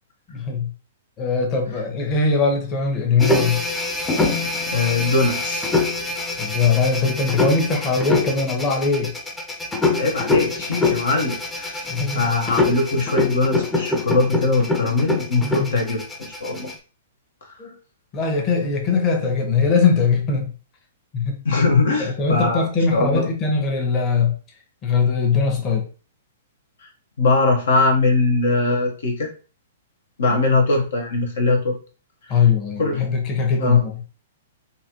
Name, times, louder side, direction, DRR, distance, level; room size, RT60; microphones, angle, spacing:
voice 1, 0.3-0.7 1.2-3.6 6.4-9.1 11.9-12.3 15.4-15.7 17.6-17.8 18.1-20.5 21.1-21.4 22.0-24.3 24.8-25.8 30.3-30.4 32.3-34.0, left 5 dB, 30° left, 2 dB, 1.0 m, -21 dB
sound 1, 3.2-16.7, left 3 dB, 10° left, 0.6 m, -24 dB
voice 2, 4.7-5.8 10.0-11.9 12.1-16.7 17.5-17.6 21.4-23.3 26.8-26.9 27.2-29.3 30.2-31.8 32.2-32.4 32.8-33.0 33.6-33.8, left 3 dB, 70° left, 2 dB, 0.8 m, -21 dB
4.0 x 2.4 x 2.8 m, 0.37 s
figure-of-eight pair, 115°, 0 cm